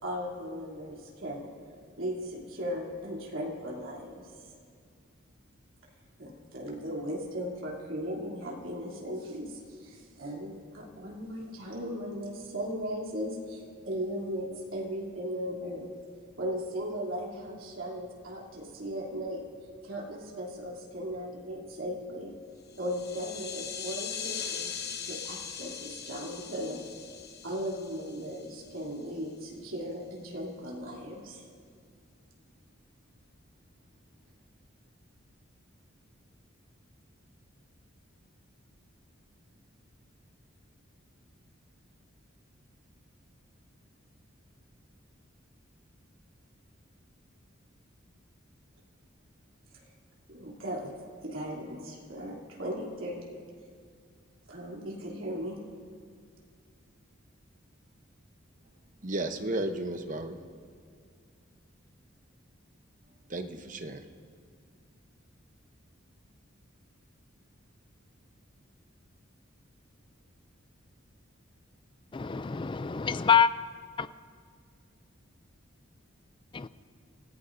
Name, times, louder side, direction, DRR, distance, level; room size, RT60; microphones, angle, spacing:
voice 1, 0.0-1.5 2.0-4.3 6.2-15.9 16.4-19.4 19.8-22.3 22.8-24.7 25.1-26.9 27.4-31.4 49.7-49.9 50.3-50.9 51.2-53.2 54.5-55.6, equal, 80° right, -3 dB, 3.1 m, -37 dB
sound 1, 22.7-28.8, left 7 dB, 50° left, 1.1 m, -40 dB
voice 2, 59.0-60.4 63.3-64.0, right 2 dB, 40° right, 7 dB, 0.9 m, -33 dB
voice 3, 72.1-73.5 74.0-74.1 76.5-76.7, left 7 dB, 25° left, 14 dB, 0.3 m, -25 dB
28.0 x 15.5 x 2.7 m, 2.2 s
head